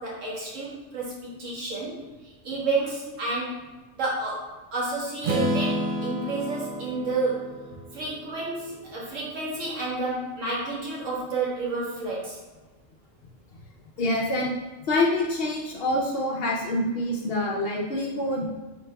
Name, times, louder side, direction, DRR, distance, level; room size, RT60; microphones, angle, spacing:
voice 1, 0.0-3.6 4.0-7.5 7.9-12.4, right 3 dB, 75° right, -5 dB, 1.4 m, -30 dB
Strum, 5.2-9.2, equal, 55° right, 0.6 m, -31 dB
voice 2, 14.0-14.5 14.9-18.5, left 1 dB, 60° left, -2 dB, 0.7 m, -26 dB
4.1 x 4.0 x 2.2 m, 1.2 s
omnidirectional pair, 1.3 m